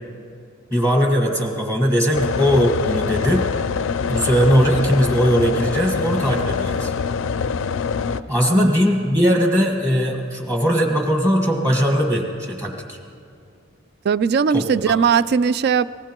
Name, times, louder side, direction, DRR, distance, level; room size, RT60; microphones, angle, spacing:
voice 1, 0.7-3.5 4.1-6.9 8.3-13.0 14.5-14.9, equal, 15° right, 2 dB, 1.6 m, -19 dB
sound 1, 2.1-8.2, left 5 dB, 70° left, 0.4 m, -24 dB
voice 2, 14.0-15.9, right 6 dB, 55° right, 17 dB, 0.3 m, -19 dB
24.0 x 18.5 x 3.0 m, 2.4 s
head